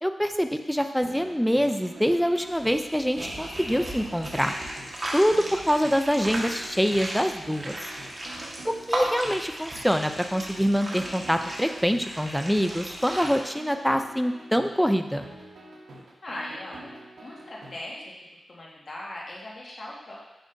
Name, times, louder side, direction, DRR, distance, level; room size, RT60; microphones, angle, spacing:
voice 1, 0.0-4.5 5.1-7.8 8.6-15.2, equal, ahead, 7 dB, 0.5 m, -25 dB
sound 1, 0.6-17.8, right 2 dB, 80° right, 1.2 m, -46 dB
sound 2, 2.5-13.4, right 1 dB, 25° right, 1.5 m, -36 dB
voice 2, 16.2-18.1 18.5-20.2, left 1 dB, 45° left, -4 dB, 1.7 m, -39 dB
8.1 x 6.2 x 2.7 m, 1.0 s
wide cardioid pair, 85°, 0 cm